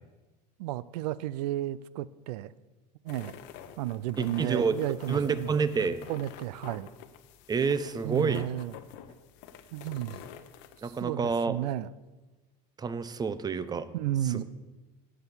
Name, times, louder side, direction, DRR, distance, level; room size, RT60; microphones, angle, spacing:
voice 1, 0.6-2.5 3.0-3.3 3.8-5.5 6.1-6.9 8.0-8.7 9.7-10.2 10.8-11.9 13.9-14.4, right 14 dB, 75° right, 19 dB, 0.5 m, -32 dB
sound 1, 3.1-11.0, left 10 dB, 60° left, 0.9 m, -48 dB
voice 2, 4.2-6.0 7.5-8.5 10.8-11.6 12.8-13.9 14.2-14.4, right 5 dB, 20° right, 14 dB, 0.7 m, -29 dB
9.6 x 6.1 x 7.2 m, 1.2 s
hypercardioid pair, 100°, 21 cm